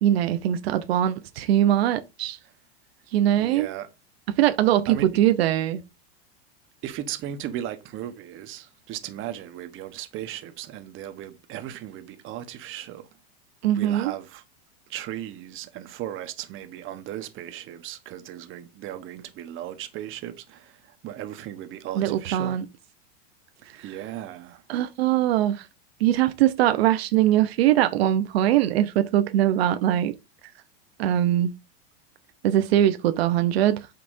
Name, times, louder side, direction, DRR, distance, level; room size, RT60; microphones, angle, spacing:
voice 1, 0.0-2.4 3.1-3.7 4.4-5.8 13.6-14.1 21.9-22.6 23.7-24.0 24.7-25.7 26.0-30.1 31.0-31.5 32.4-34.0, right 12 dB, 75° right, 1.0 m, -22 dB
voice 2, 3.4-3.9 4.9-5.1 6.8-13.1 13.7-14.4 14.9-22.6 23.8-24.6, right 11 dB, 40° right, 1.3 m, -36 dB
8.4 x 5.9 x 2.7 m
supercardioid pair, 125°, 32 cm